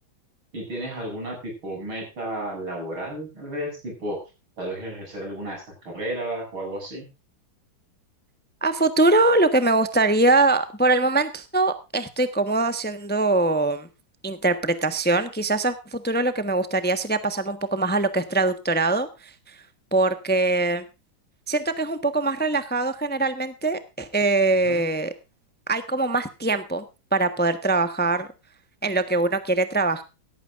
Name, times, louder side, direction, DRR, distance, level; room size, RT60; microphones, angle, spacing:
voice 1, 0.5-4.2 4.6-7.1 24.6-24.8, right 1 dB, 90° right, 1 dB, 8.7 m, -33 dB
voice 2, 8.6-13.9 14.2-19.6 19.9-20.8 21.5-25.1 25.7-26.8 27.1-28.3 28.8-30.0, right 2 dB, 5° left, 10 dB, 0.9 m, -22 dB
17.5 x 13.5 x 2.6 m, 0.29 s
omnidirectional pair, 2.2 m